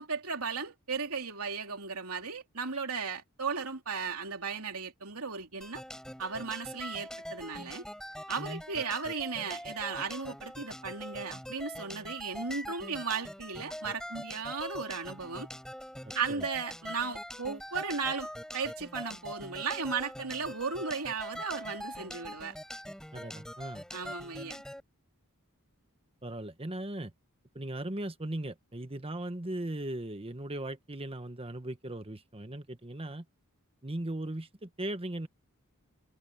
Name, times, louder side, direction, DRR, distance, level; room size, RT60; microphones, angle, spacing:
voice 1, 0.0-5.8 6.2-7.9 8.3-15.5 16.1-22.5 23.9-24.6, right 5 dB, 75° right, 3.3 m, -36 dB
sound 1, 5.6-24.8, equal, 5° left, 7.5 m, -43 dB
voice 2, 16.0-16.5 23.1-23.8 26.2-27.1 27.5-33.2 33.8-35.3, right 1 dB, 25° right, 1.3 m, -38 dB
head